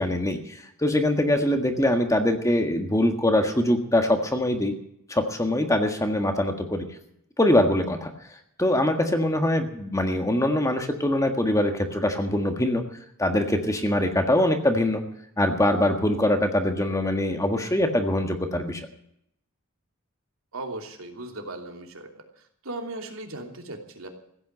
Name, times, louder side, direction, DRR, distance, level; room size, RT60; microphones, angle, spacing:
voice 1, 0.0-4.7 5.1-6.8 7.4-8.1 8.6-12.8 13.2-15.0 15.4-18.8, left 1 dB, 15° left, 5 dB, 1.6 m, -23 dB
voice 2, 20.5-22.1 22.6-24.1, right 2 dB, 75° right, 3 dB, 2.9 m, -37 dB
15.5 x 9.3 x 8.9 m, 0.73 s
head